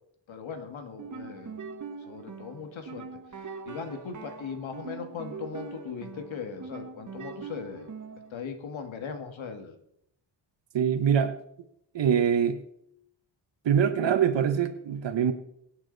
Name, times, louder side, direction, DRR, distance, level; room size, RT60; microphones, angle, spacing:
voice 1, 0.3-1.6 2.1-3.1 3.4-7.9 8.3-9.8, left 6 dB, 80° left, 2.0 m, -39 dB
sound 1, 0.9-8.3, right 5 dB, 40° right, 1.2 m, -42 dB
voice 2, 10.7-11.4 11.9-12.6 13.6-15.3, right 8 dB, 65° right, 1.2 m, -24 dB
23.0 x 8.9 x 4.0 m
wide cardioid pair, 135°, 46 cm